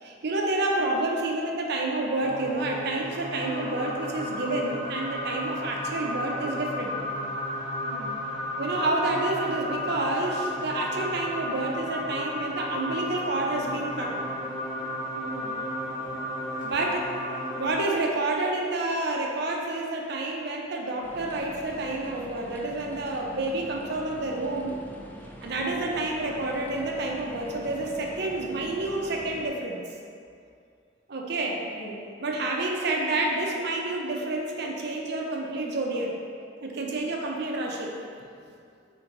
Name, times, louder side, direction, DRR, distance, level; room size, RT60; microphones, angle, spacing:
voice 1, 0.0-7.0 8.6-14.2 16.6-17.1 17.5-24.8 25.4-29.8 31.1-31.6 32.2-36.1 36.6-37.9, right 2 dB, 60° right, 0 dB, 0.6 m, -29 dB
sound 1, 2.2-17.7, left 1 dB, 50° left, 1.2 m, -33 dB
voice 2, 7.8-8.2 15.1-15.7 16.0-16.2 17.8-18.2 25.6-25.9 31.6-32.0, right 1 dB, 90° left, -8 dB, 1.3 m, -44 dB
sound 2, 21.0-29.5, equal, 10° left, 0.3 m, -45 dB
4.3 x 2.9 x 3.8 m, 2.3 s
head